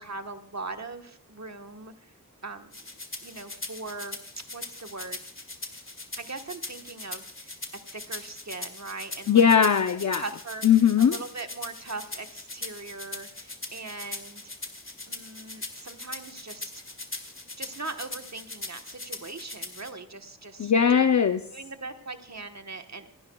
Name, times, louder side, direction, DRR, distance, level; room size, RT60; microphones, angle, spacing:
voice 1, 0.0-2.1 2.4-2.8 3.2-4.2 4.5-5.2 6.2-9.5 10.2-14.5 15.1-16.8 17.6-21.1 21.5-23.1, right 3 dB, 50° right, 6 dB, 1.3 m, -40 dB
sound 1, 2.7-19.9, left 2 dB, 35° left, 2.0 m, -40 dB
voice 2, 9.3-10.2 10.6-11.2 20.6-21.4, left 7 dB, 55° left, 9 dB, 0.6 m, -19 dB
28.0 x 10.5 x 2.3 m, 0.63 s
wide cardioid pair, 45°, 34 cm